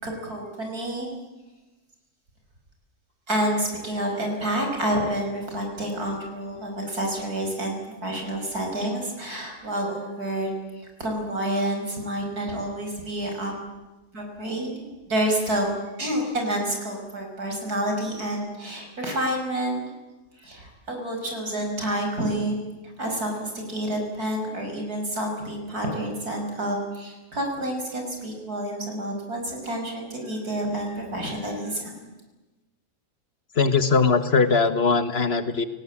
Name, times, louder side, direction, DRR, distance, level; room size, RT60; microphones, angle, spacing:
voice 1, 0.0-1.1 3.3-7.8 8.0-10.5 11.0-13.5 14.1-15.7 16.0-19.9 20.4-22.6 23.0-32.1, right 1 dB, 70° right, 2 dB, 6.2 m, -29 dB
voice 2, 33.6-35.6, left 4 dB, 40° left, 10 dB, 1.7 m, -20 dB
29.0 x 19.0 x 8.8 m, 1.1 s
omnidirectional pair, 1.7 m